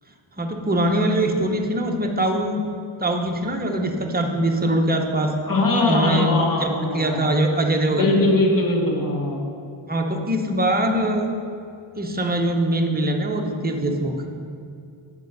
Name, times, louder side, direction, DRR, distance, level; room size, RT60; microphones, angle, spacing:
voice 1, 0.4-2.6 3.0-5.3 5.9-8.1 9.9-11.2 12.0-14.1, right 1 dB, 20° right, 2 dB, 0.6 m, -22 dB
voice 2, 5.5-7.2 8.0-9.4, left 2 dB, 40° left, 0 dB, 1.2 m, -21 dB
9.1 x 5.2 x 5.3 m, 2.5 s
wide cardioid pair, 160°, 50 cm